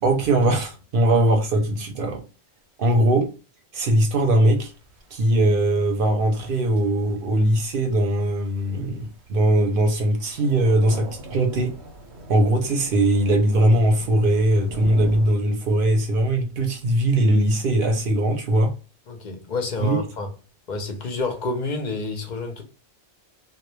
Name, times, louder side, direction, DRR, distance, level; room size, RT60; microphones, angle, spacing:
voice 1, 0.0-2.2 2.8-3.3 3.7-4.7 5.1-11.7 12.3-18.7 19.8-20.0, right 1 dB, 60° right, 0.7 m, -20 dB
Thunder / Rain, 4.2-15.3, right 1 dB, 90° right, 1.0 m, -41 dB
voice 2, 19.1-20.3 20.7-22.6, left 3 dB, 55° left, 0.5 m, -29 dB
2.2 x 2.1 x 3.0 m
omnidirectional pair, 1.1 m